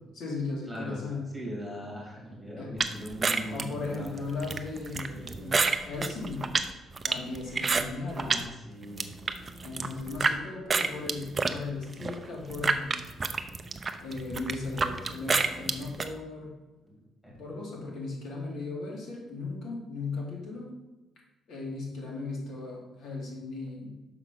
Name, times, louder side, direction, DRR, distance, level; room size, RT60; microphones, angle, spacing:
voice 1, 0.2-1.3 2.6-2.7 3.5-6.5 7.0-8.4 9.6-13.0 14.0-16.5 17.4-20.7 21.5-23.9, left 3 dB, 65° left, -2 dB, 2.6 m, -37 dB
voice 2, 0.7-1.0 1.3-4.2 5.2-5.5 8.1-9.1 16.8-17.3, equal, 5° left, -3 dB, 2.7 m, -40 dB
sound 1, 2.8-8.5 8.8-10.4 10.7-16.1, right 4 dB, 25° right, 0.5 m, -29 dB
6.2 x 5.0 x 6.1 m, 1.1 s
cardioid pair, 155°, 0 cm